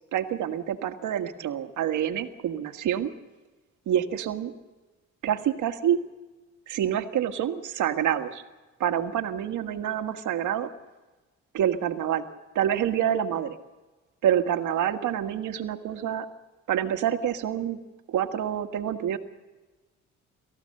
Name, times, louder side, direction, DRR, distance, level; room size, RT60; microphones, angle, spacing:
voice 1, 0.1-3.1 3.9-4.5 5.2-6.0 6.7-8.4 8.8-10.7 11.5-12.3 12.5-13.6 14.2-16.3 16.7-17.8 18.1-19.2, right 10 dB, 80° right, 7 dB, 1.6 m, -27 dB
28.0 x 14.5 x 6.6 m, 1.2 s
cardioid pair, 90°, 30 cm